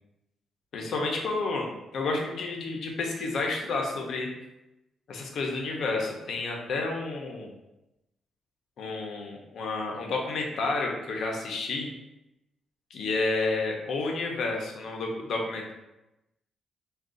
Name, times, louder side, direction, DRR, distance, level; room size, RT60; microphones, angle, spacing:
voice 1, 0.7-4.3 5.1-7.5 8.8-11.9 12.9-15.7, left 3 dB, 65° left, 0 dB, 0.6 m, -30 dB
2.5 x 2.3 x 3.7 m, 0.95 s
cardioid pair, 105°, 0 cm